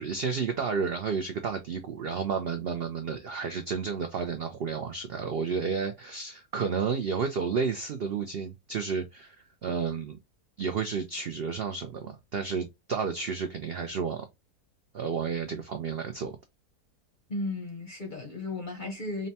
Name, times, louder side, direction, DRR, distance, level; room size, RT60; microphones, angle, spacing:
voice 1, 0.0-9.4 9.6-10.2 10.6-14.2 14.9-16.3, right 5 dB, 70° right, 0.5 m, -31 dB
voice 2, 17.3-19.3, left 2 dB, 45° left, 0.7 m, -35 dB
5.1 x 2.2 x 2.7 m
omnidirectional pair, 1.7 m